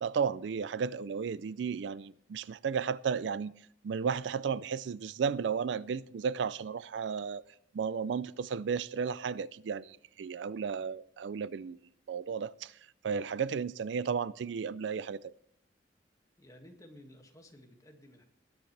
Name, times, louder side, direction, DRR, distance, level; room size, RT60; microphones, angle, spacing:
voice 1, 0.0-3.5 3.8-7.4 7.7-11.8 12.1-12.7 13.0-15.3, right 6 dB, 75° right, 0.4 m, -34 dB
voice 2, 16.4-18.2, left 1 dB, 20° left, 1.9 m, -54 dB
19.5 x 10.5 x 3.3 m
head